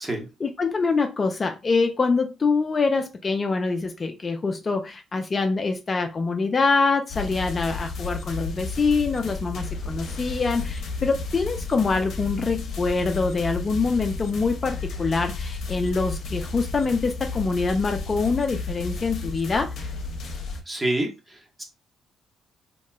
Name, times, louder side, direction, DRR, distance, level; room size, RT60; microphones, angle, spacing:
voice 1, 0.4-19.9, left 4 dB, 35° left, 0.4 m, -25 dB
sound 1, 7.1-20.6, left 3 dB, 65° left, 0.7 m, -33 dB
voice 2, 20.7-21.6, right 1 dB, 20° right, 1.1 m, -28 dB
2.9 x 2.8 x 2.3 m
cardioid pair, 90°, 0 cm